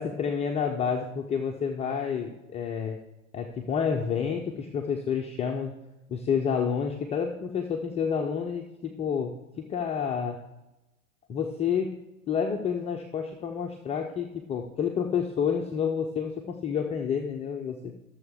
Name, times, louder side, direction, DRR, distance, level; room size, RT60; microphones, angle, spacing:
voice 1, 0.0-3.0 3.3-5.8 6.1-10.4 11.3-11.9 12.3-17.9, left 7 dB, 15° left, 1 dB, 0.5 m, -29 dB
13.5 x 7.0 x 3.6 m, 0.97 s
hypercardioid pair, 105°, 43 cm